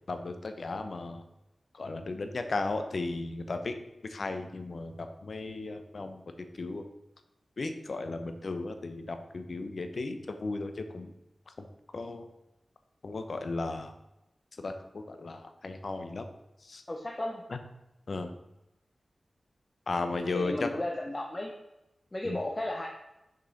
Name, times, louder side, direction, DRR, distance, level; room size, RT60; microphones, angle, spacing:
voice 1, 0.1-1.2 1.7-3.7 4.1-6.2 6.5-6.8 7.6-11.1 11.5-11.7 11.9-12.3 13.0-13.9 14.6-16.3 16.6-16.8 17.5-17.6 18.1-18.3 19.9-20.7 22.2-22.4, left 3 dB, 65° left, 7 dB, 0.8 m, -35 dB
voice 2, 16.9-17.4 20.3-21.5 22.1-22.9, left 1 dB, 25° left, 0 dB, 0.8 m, -34 dB
6.5 x 5.4 x 4.1 m, 0.92 s
wide cardioid pair, 75°, 0 cm